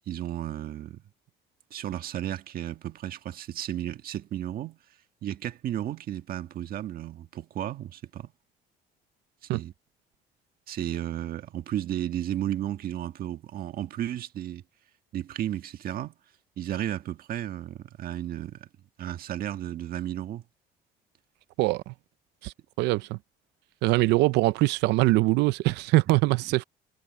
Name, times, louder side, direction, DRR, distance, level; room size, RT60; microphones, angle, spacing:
voice 1, 0.1-1.0 1.7-4.8 5.2-8.3 9.5-9.7 10.7-14.6 15.1-16.1 16.6-18.7 19.0-20.4, right 12 dB, 60° right, 1.6 m, -33 dB
voice 2, 21.6-21.9 22.4-23.2 23.8-26.6, right 20 dB, 90° right, 0.6 m, -23 dB
cardioid pair, 110°, 17 cm